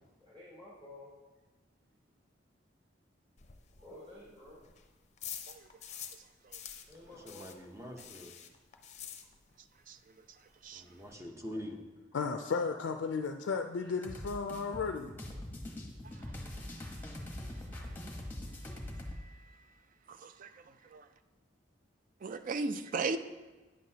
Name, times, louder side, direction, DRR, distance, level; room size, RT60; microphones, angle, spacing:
voice 1, 0.2-1.4 1.8-2.1 3.8-4.7 6.8-7.6 10.5-10.9 13.8-13.9, left 1 dB, 30° right, 2.8 m, -53 dB
sound 1, 3.4-6.2 6.5-9.7 10.0-10.1 10.4-10.5 10.7-11.1, left 9 dB, 40° left, 0.6 m, -47 dB
voice 2, 7.2-8.3 10.7-11.8, equal, 15° right, 0.8 m, -44 dB
voice 3, 12.1-15.1, left 5 dB, 85° left, 0.4 m, -34 dB
sound 2, 14.0-19.2, left 1 dB, 10° left, 1.0 m, -43 dB
voice 4, 20.1-20.5 20.9-21.0 22.2-23.2, right 3 dB, 45° right, 0.4 m, -36 dB
9.2 x 7.6 x 2.8 m
head